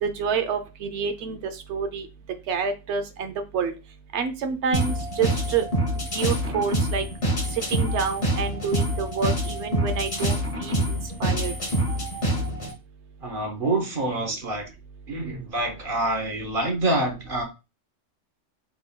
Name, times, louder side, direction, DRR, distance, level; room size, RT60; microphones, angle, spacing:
voice 1, 0.0-1.4 1.7-2.1 2.5-3.7 4.1-5.6 6.1-7.0 7.7-10.8 11.2-11.5, right 6 dB, 65° right, 8 dB, 0.9 m, -28 dB
sound 1, 4.7-12.7, equal, 30° left, 0.9 m, -26 dB
voice 2, 13.2-14.7 15.1-17.4, right 2 dB, 45° right, 2 dB, 1.0 m, -27 dB
3.7 x 3.5 x 2.2 m, 0.27 s
omnidirectional pair, 1.4 m